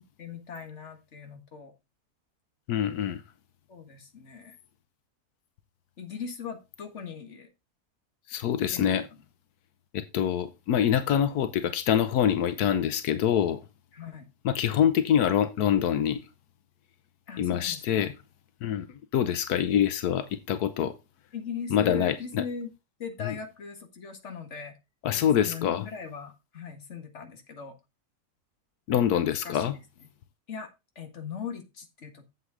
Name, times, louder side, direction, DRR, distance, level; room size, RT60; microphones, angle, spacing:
voice 1, 0.2-1.7 3.7-4.6 6.0-7.5 8.7-9.2 13.9-14.3 17.3-18.1 21.3-22.7 23.0-24.7 25.1-27.7 29.1-29.8 30.5-30.7 31.0-32.2, left 6 dB, 50° left, 1.9 m, -39 dB
voice 2, 2.7-3.2 8.3-9.1 9.9-13.6 14.4-16.2 17.4-18.1 18.6-20.9 21.7-22.4 23.2-23.3 25.0-25.9 28.9-29.8, left 9 dB, 90° left, 1.3 m, -25 dB
8.1 x 8.0 x 3.8 m
omnidirectional pair, 1.6 m